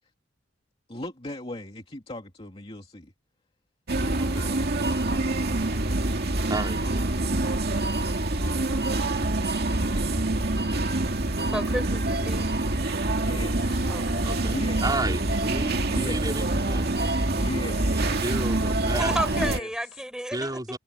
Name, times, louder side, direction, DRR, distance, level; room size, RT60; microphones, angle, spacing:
voice 1, 0.9-3.1 12.2-12.6 13.1-13.9 14.3-16.6 17.2-18.2 19.1-20.0, left 1 dB, 30° left, 2.5 m, -38 dB
sound 1, 3.9-19.6, right 2 dB, 55° right, 2.2 m, -26 dB
voice 2, 4.2-4.5 6.5-7.5 13.3-13.5 14.2-14.5 14.8-17.1 17.9-19.1 20.3-20.8, right 2 dB, 20° right, 4.1 m, -32 dB
voice 3, 11.4-12.5 13.9-14.2 18.9-20.8, equal, 5° right, 4.3 m, -32 dB
head